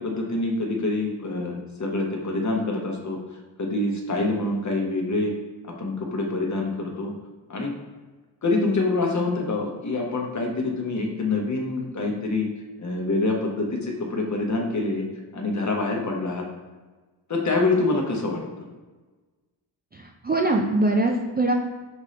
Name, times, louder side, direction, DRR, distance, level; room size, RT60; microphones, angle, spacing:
voice 1, 0.0-3.2 3.6-5.3 5.6-7.1 7.5-7.7 8.4-12.5 12.8-15.1 15.3-16.4 17.3-18.4, left 2 dB, 40° left, 1 dB, 0.9 m, -26 dB
voice 2, 19.9-21.5, right 2 dB, 25° right, 1 dB, 0.4 m, -22 dB
5.2 x 2.6 x 3.2 m, 1.3 s
cardioid pair, 65°, 45 cm